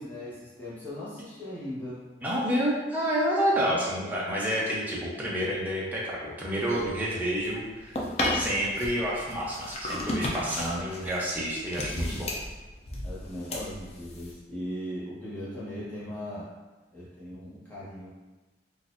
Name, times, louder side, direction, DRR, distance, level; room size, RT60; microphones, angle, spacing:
voice 1, 0.0-2.1 3.6-4.2 13.0-16.5 16.9-18.1, equal, 10° left, -10 dB, 1.1 m, -39 dB
voice 2, 2.2-8.0 8.3-12.3, equal, 10° right, -6 dB, 0.6 m, -29 dB
sound 1, 6.7-14.3, left 1 dB, 35° left, 0.5 m, -34 dB
3.9 x 2.6 x 2.5 m, 1.2 s
head